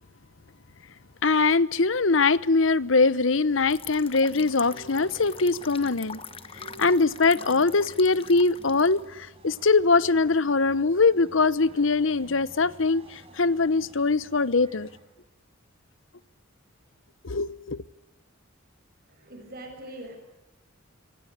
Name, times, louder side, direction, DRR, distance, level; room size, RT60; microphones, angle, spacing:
voice 1, 1.2-6.2 6.8-14.9 17.2-17.8, left 3 dB, 70° left, 1.0 m, -22 dB
sound 1, 2.3-15.0, right 1 dB, 30° right, 5.3 m, -50 dB
sound 2, 3.7-9.1, left 6 dB, 30° left, 1.2 m, -43 dB
voice 2, 19.1-20.2, right 1 dB, 50° right, 6.9 m, -42 dB
26.0 x 24.5 x 8.3 m
head